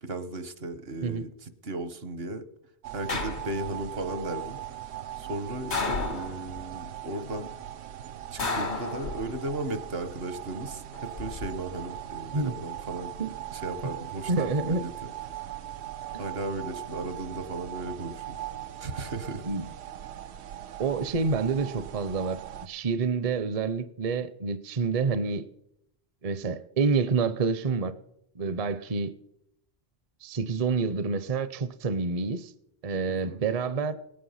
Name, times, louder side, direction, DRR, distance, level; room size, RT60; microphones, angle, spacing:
voice 1, 0.0-2.4 2.9-4.6 5.2-7.5 8.3-15.1 16.2-18.4 18.8-19.4 33.1-33.4, right 2 dB, 70° right, 1.4 m, -36 dB
sound 1, 2.8-22.7, right 12 dB, 90° right, 0.9 m, -40 dB
sound 2, 3.1-3.9 5.7-6.6 8.4-9.5 10.9-11.5, left 3 dB, 90° left, 2.3 m, -32 dB
voice 2, 14.3-14.8 19.4-19.6 20.8-25.5 26.2-27.9 28.4-29.1 30.2-32.5 32.8-33.9, right 4 dB, 40° right, 0.6 m, -28 dB
18.5 x 8.7 x 5.6 m
omnidirectional pair, 1.1 m